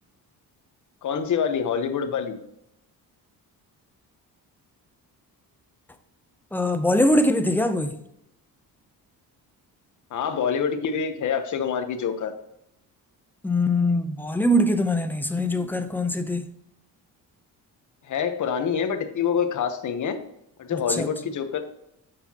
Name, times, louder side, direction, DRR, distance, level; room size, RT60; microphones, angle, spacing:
voice 1, 1.0-2.4 10.1-12.3 18.0-20.2 20.6-21.6, left 7 dB, 50° left, 0.9 m, -26 dB
voice 2, 6.5-8.0 13.4-16.5 20.7-21.1, left 1 dB, 5° left, 0.5 m, -22 dB
6.8 x 5.8 x 2.8 m
cardioid pair, 125°, 38 cm